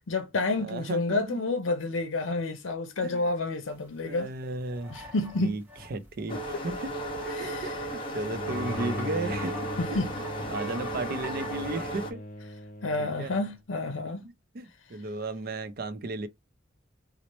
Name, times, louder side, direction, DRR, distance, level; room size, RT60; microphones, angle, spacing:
voice 1, 0.1-4.3 4.9-5.6 6.3-6.4 7.3-7.7 9.8-10.1 12.8-14.2, left 3 dB, 85° left, 0.6 m, -29 dB
voice 2, 0.6-1.4 3.0-3.3 4.0-5.1 5.4-5.6 5.9-6.4 6.6-6.9 7.2-7.7 8.1-12.2 13.0-13.3 14.2-16.3, right 2 dB, 50° right, 0.4 m, -35 dB
sound 1, 4.2-4.3 4.5-12.1, equal, 10° right, 0.9 m, -44 dB
sound 2, 6.3-12.1, right 1 dB, 25° left, 1.0 m, -35 dB
Bowed string instrument, 8.3-13.5, left 2 dB, 45° left, 0.5 m, -39 dB
3.0 x 2.0 x 4.0 m
head